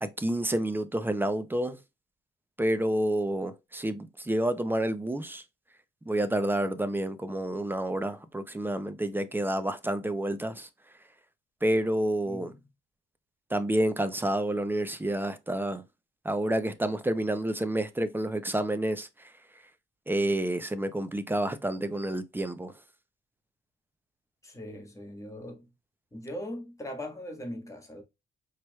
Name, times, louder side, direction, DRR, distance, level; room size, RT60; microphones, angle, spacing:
voice 1, 0.0-1.8 2.6-5.4 6.1-10.7 11.6-12.5 13.5-15.8 16.2-19.3 20.1-22.7, right 1 dB, 10° right, 0.6 m, -29 dB
voice 2, 12.2-12.6 24.4-25.7 26.1-28.0, left 1 dB, 15° left, 1.6 m, -40 dB
4.7 x 3.0 x 2.3 m
cardioid pair, 90°, 20 cm